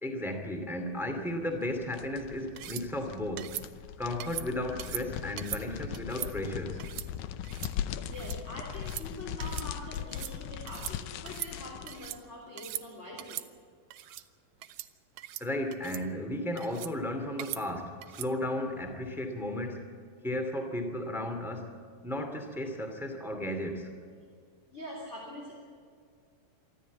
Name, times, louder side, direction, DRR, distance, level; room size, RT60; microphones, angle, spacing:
voice 1, 0.0-3.5 4.0-6.8 14.1-14.2 15.4-19.8 20.2-21.7 22.0-23.9, left 1 dB, ahead, 5 dB, 1.4 m, -34 dB
sound 1, 1.5-12.2, left 10 dB, 85° left, 1.7 m, -39 dB
sound 2, 2.6-2.9 3.4-3.7 4.2-4.5 4.8-5.0 5.4-5.6 5.9-6.3 6.8-7.1 7.4-7.7 8.0-8.4 8.7-9.1 9.4-9.7 9.9-10.3 10.7-11.0 11.3-12.2 12.6-12.9 13.2-13.5 13.9-14.2 14.6-14.9 15.2-15.4 15.7-16.0 16.6-16.9 17.4-17.6 18.0-18.3, right 14 dB, 80° right, 2.0 m, -40 dB
voice 2, 8.0-13.4 24.7-25.5, left 1 dB, 20° left, -2 dB, 3.2 m, -44 dB
24.0 x 14.5 x 8.4 m, 2.1 s
omnidirectional pair, 4.4 m